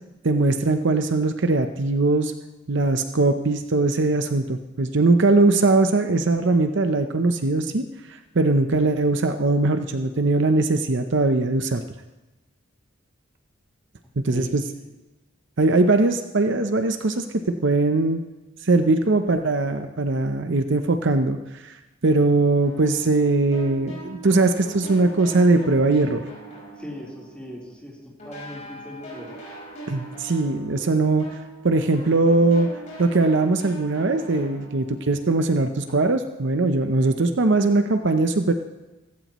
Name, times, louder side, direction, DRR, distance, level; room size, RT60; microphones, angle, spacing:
voice 1, 0.2-2.3 2.7-7.8 8.1-11.8 14.2-14.6 15.6-18.2 18.6-21.7 22.0-26.2 29.9-31.3 31.6-32.7 33.0-38.5, right 2 dB, 60° right, 8 dB, 0.7 m, -21 dB
sound 1, 22.6-27.8 28.2-35.9, right 2 dB, 35° left, 4.9 m, -41 dB
voice 2, 26.8-28.0 28.2-29.3, equal, 5° left, -5 dB, 3.9 m, -38 dB
16.5 x 16.0 x 3.1 m, 1.1 s
head